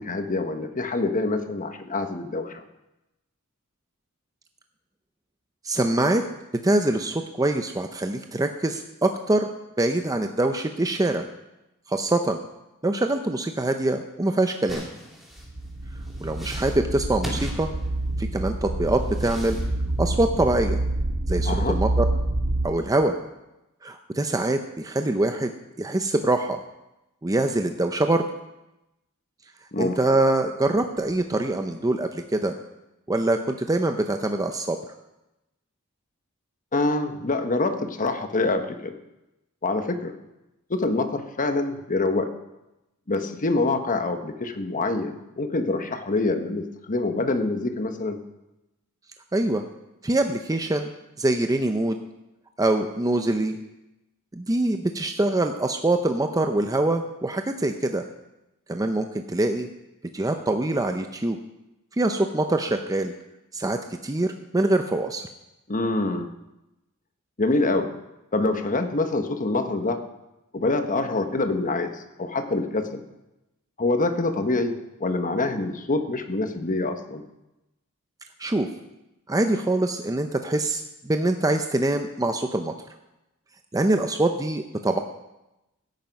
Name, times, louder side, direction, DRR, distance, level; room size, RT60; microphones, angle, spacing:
voice 1, 0.0-2.6 21.4-21.8 29.7-30.0 36.7-38.9 39.6-40.1 40.7-42.3 43.1-48.2 65.7-66.3 67.4-67.9 68.3-70.0 70.5-73.0 73.8-74.7 75.0-77.2, left 2 dB, 40° left, 7 dB, 1.1 m, -25 dB
voice 2, 5.6-6.2 6.6-9.5 9.8-11.3 11.9-12.4 12.8-14.8 16.2-17.7 18.2-19.6 20.0-20.8 21.3-22.1 22.6-23.2 23.8-25.5 25.8-26.6 27.2-28.2 29.8-32.5 33.1-34.8 49.3-49.6 50.0-50.9 51.2-52.0 52.6-53.6 54.3-58.0 58.7-59.7 60.1-61.4 61.9-63.1 63.5-65.3 78.4-78.7 79.3-82.7 83.7-85.0, right 2 dB, 15° right, 6 dB, 0.6 m, -24 dB
sound 1, 14.7-18.3 18.8-19.7, equal, ahead, 2.6 m, -39 dB
sound 2, 15.4-22.7, right 1 dB, 70° right, 1.9 m, -27 dB
16.0 x 9.2 x 5.3 m, 0.95 s
head